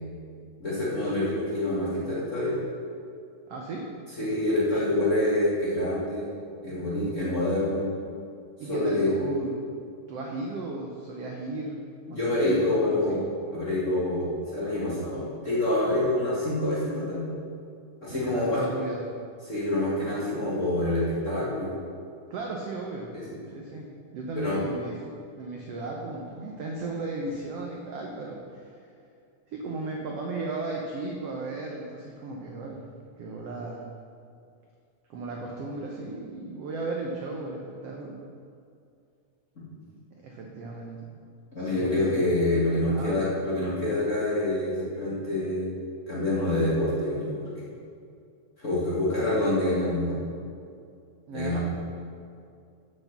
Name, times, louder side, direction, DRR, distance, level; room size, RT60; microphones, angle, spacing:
voice 1, 0.6-2.6 4.2-6.3 6.6-7.9 8.7-9.1 12.1-13.2 13.5-17.3 18.0-18.6 19.4-21.7 23.1-23.2 24.3-24.6 41.5-45.7 46.1-47.5 48.6-50.1 51.3-51.6, left 1 dB, 30° left, -8 dB, 1.5 m, -26 dB
voice 2, 3.5-3.9 8.6-9.5 10.1-11.8 12.1-13.2 18.1-19.0 22.3-23.1 23.5-23.9 24.1-28.8 29.5-32.8 33.2-33.9 35.1-38.2 40.1-41.2 41.6-42.3 42.8-43.2 51.3-51.6, right 2 dB, 75° right, -1 dB, 1.4 m, -35 dB
7.8 x 7.1 x 7.1 m, 2.4 s
omnidirectional pair, 3.9 m